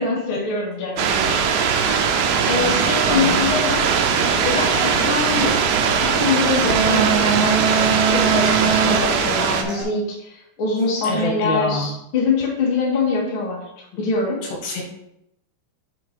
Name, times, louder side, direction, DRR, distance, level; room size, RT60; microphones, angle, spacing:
voice 1, 0.0-1.7 2.5-3.8 4.3-14.4, left 4 dB, 40° left, -5 dB, 2.2 m, -24 dB
sound 1, 1.0-9.6, right 7 dB, 85° right, 2.9 m, -19 dB
Human voice / Acoustic guitar, 1.8-9.8, right 3 dB, 60° right, 2.6 m, -32 dB
voice 2, 3.1-3.6 11.0-11.9 14.4-14.8, left 2 dB, 75° left, 0 dB, 3.3 m, -27 dB
6.9 x 5.0 x 4.5 m, 0.82 s
omnidirectional pair, 5.1 m